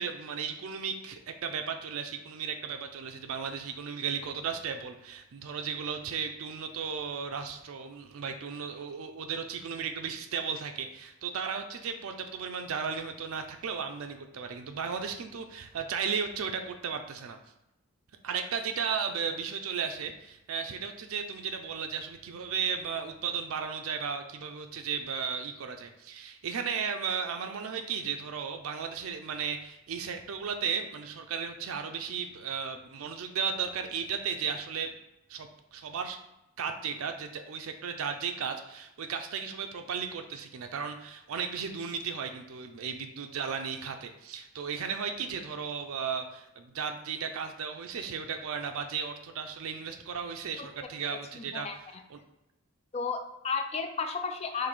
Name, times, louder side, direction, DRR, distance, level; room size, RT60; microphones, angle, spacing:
voice 1, 0.0-17.4 18.2-34.9 35.3-36.2 36.6-51.8 52.1-52.2, right 6 dB, 75° right, 6 dB, 0.4 m, -35 dB
voice 2, 51.3-52.0 52.9-54.7, left 5 dB, 30° left, 6 dB, 0.3 m, -33 dB
4.3 x 2.7 x 4.0 m, 0.89 s
head